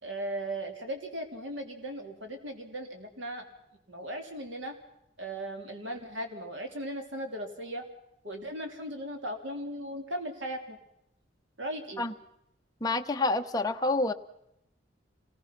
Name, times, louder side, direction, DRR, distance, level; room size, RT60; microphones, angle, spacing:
voice 1, 0.0-3.5 3.9-4.7 5.2-7.8 8.2-10.8 11.6-12.0, right 1 dB, 70° right, 4 dB, 3.3 m, -37 dB
voice 2, 12.8-14.1, left 2 dB, 20° left, 5 dB, 0.9 m, -28 dB
27.0 x 19.5 x 6.0 m, 0.83 s
head